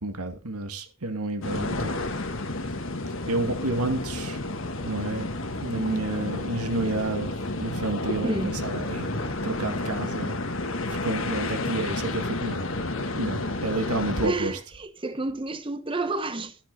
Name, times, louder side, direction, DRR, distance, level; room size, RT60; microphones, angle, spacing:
voice 1, 0.0-2.2 3.3-4.4 4.8-5.3 5.6-10.4 10.9-12.6 13.2-14.6, right 2 dB, 90° right, 2.2 m, -30 dB
sound 1, 1.4-14.3, left 2 dB, 65° left, 1.4 m, -31 dB
voice 2, 8.2-8.5 13.8-13.9 14.2-16.6, right 2 dB, 25° right, 1.0 m, -30 dB
12.5 x 10.0 x 4.1 m
head